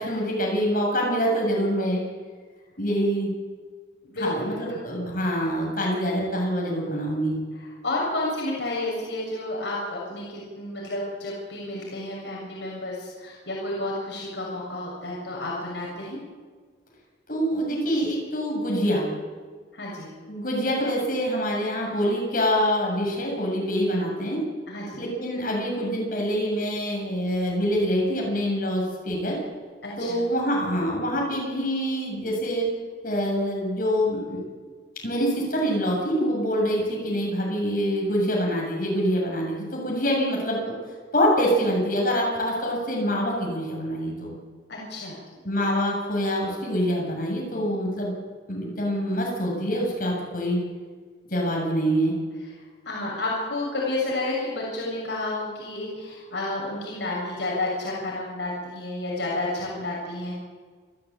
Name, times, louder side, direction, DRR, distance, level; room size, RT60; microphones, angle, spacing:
voice 1, 0.0-2.0 2.8-3.3 4.2-7.4 17.3-19.1 20.3-24.4 25.0-29.4 30.0-32.7 33.0-34.4 35.0-40.6 41.1-44.3 45.4-48.1 48.5-50.6 51.3-52.1, equal, 45° left, -2 dB, 7.7 m, -25 dB
voice 2, 4.1-4.8 7.8-16.2 19.7-20.1 24.7-25.0 29.8-30.2 44.7-45.1 52.8-60.4, left 2 dB, 70° left, -4 dB, 6.9 m, -31 dB
29.0 x 14.0 x 8.7 m, 1.5 s
head